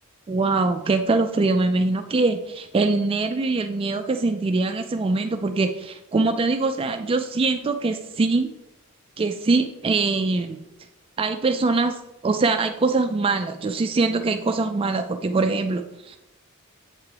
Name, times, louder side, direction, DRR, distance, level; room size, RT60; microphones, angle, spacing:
voice 1, 0.3-8.5 9.2-10.6 11.2-16.2, right 3 dB, 25° right, 7 dB, 0.3 m, -23 dB
8.1 x 3.5 x 4.9 m, 0.91 s
head